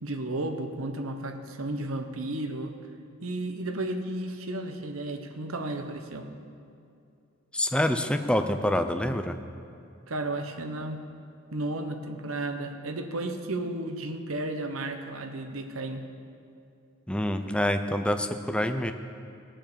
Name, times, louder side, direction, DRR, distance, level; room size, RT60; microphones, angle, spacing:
voice 1, 0.0-2.7 3.2-6.3 10.1-11.0 11.5-16.0, right 2 dB, 75° right, 6 dB, 1.1 m, -33 dB
voice 2, 7.5-9.4 17.1-18.9, left 1 dB, 5° left, 8 dB, 0.6 m, -26 dB
18.0 x 7.5 x 6.9 m, 2.5 s
head